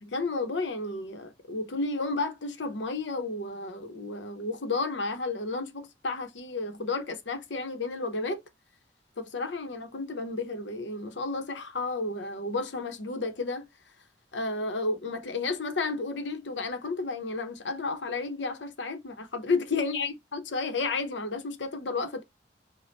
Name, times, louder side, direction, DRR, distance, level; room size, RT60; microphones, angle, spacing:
voice 1, 0.0-8.4 9.2-13.7 14.3-22.2, left 3 dB, 90° left, 1.0 m, -32 dB
5.1 x 2.4 x 4.0 m
head